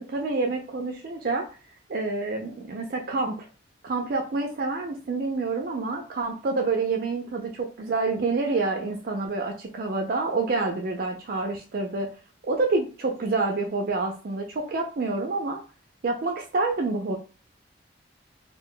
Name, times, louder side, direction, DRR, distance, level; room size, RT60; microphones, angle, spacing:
voice 1, 0.0-1.4 1.9-3.4 3.8-12.1 12.5-15.6 16.0-17.2, right 3 dB, 50° right, 2 dB, 0.4 m, -27 dB
2.2 x 2.2 x 3.8 m, 0.35 s
head